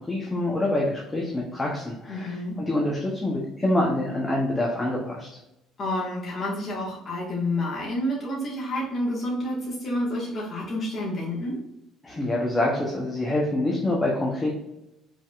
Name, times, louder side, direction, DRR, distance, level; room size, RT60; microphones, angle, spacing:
voice 1, 0.0-5.3 12.0-14.5, left 1 dB, 10° left, -3 dB, 0.7 m, -26 dB
voice 2, 2.1-2.6 5.8-11.6, left 1 dB, 30° left, -6 dB, 1.3 m, -29 dB
5.3 x 3.5 x 2.3 m, 0.88 s
cardioid pair, 160°, 0 cm